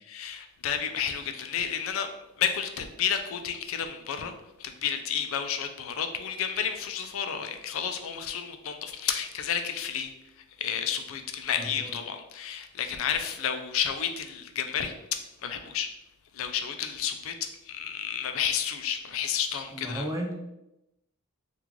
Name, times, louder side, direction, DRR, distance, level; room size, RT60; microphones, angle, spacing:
voice 1, 0.1-2.1 2.4-4.3 4.6-10.1 10.6-14.9 15.4-15.9 16.3-20.1, left 8 dB, 70° left, 6 dB, 0.4 m, -31 dB
voice 2, 11.5-11.9 19.7-20.3, equal, 15° right, 1 dB, 0.4 m, -34 dB
3.0 x 2.4 x 3.6 m, 0.91 s
head